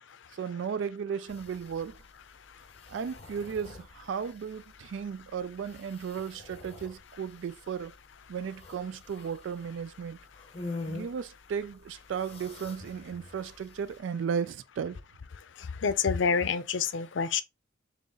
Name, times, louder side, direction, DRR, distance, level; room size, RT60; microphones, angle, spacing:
voice 1, 0.3-2.0 2.9-7.9 8.3-10.2 10.9-15.0, right 7 dB, 75° right, 0.3 m, -35 dB
sound 1, 1.3-14.0, left 3 dB, 30° left, 0.7 m, -47 dB
voice 2, 15.6-17.4, left 6 dB, 75° left, 0.5 m, -27 dB
3.8 x 3.0 x 3.7 m
head